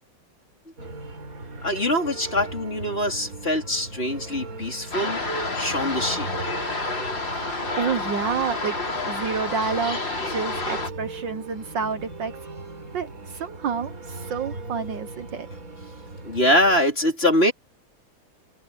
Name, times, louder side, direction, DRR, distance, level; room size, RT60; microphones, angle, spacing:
sound 1, 0.8-16.8, right 2 dB, 40° right, 4.7 m, -39 dB
voice 1, 1.6-5.2 5.6-6.3 16.2-17.5, left 1 dB, 30° left, 4.5 m, -23 dB
sound 2, 4.9-10.9, left 2 dB, 60° left, 5.6 m, -29 dB
voice 2, 7.3-8.8 9.0-10.0 10.2-12.3 12.9-15.5, right 6 dB, 65° right, 1.7 m, -29 dB
omnidirectional pair, 2.2 m